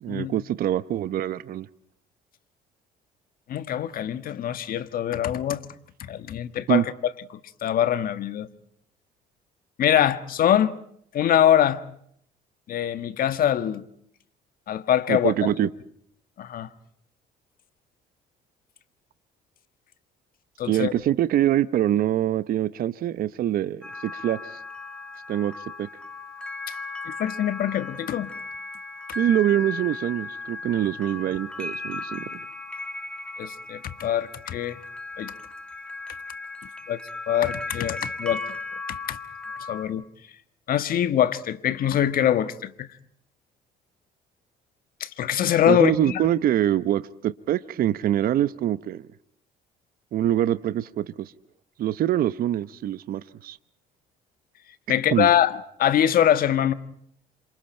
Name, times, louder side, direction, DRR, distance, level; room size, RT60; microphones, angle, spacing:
voice 1, 0.0-1.7 6.7-6.9 15.1-15.7 20.6-24.6 25.3-25.5 25.8-25.9 29.1-32.3 45.7-49.1 50.1-51.3 51.8-53.6 55.1-55.3, right 11 dB, 60° right, 0.9 m, -24 dB
voice 2, 3.5-5.6 6.0-6.8 7.6-8.5 9.8-10.7 11.1-11.8 12.7-13.8 14.7-15.3 16.4-16.7 20.6-20.9 27.1-28.3 33.4-34.8 35.2-35.3 36.9-37.0 37.3-38.4 38.9-39.2 39.7-40.0 40.7-42.9 45.0-46.2 54.9-56.7, left 10 dB, 60° left, 1.5 m, -23 dB
sound 1, 23.8-39.8, left 3 dB, 5° left, 2.2 m, -36 dB
29.0 x 26.5 x 4.5 m
cardioid pair, 110°, 17 cm